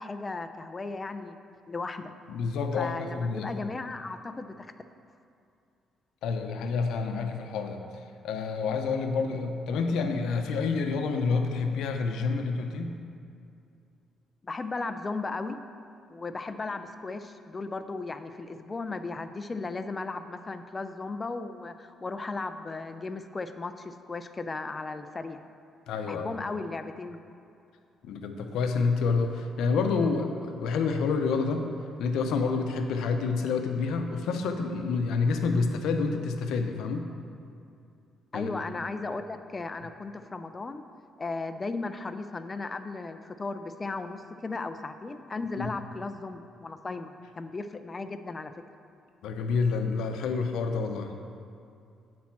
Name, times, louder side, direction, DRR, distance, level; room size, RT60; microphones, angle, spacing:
voice 1, 0.0-1.4 1.7-2.1 2.7-4.7 14.4-15.6 16.1-25.4 26.1-27.2 38.3-40.8 41.2-48.5, left 3 dB, 25° left, 10 dB, 0.4 m, -36 dB
voice 2, 2.3-3.7 6.2-7.8 8.2-13.0 25.9-26.3 28.0-31.6 32.0-37.1 38.3-38.5 45.6-45.7 49.2-51.2, left 4 dB, 80° left, 5 dB, 0.7 m, -28 dB
8.7 x 4.2 x 6.0 m, 2.5 s
cardioid pair, 110°, 0 cm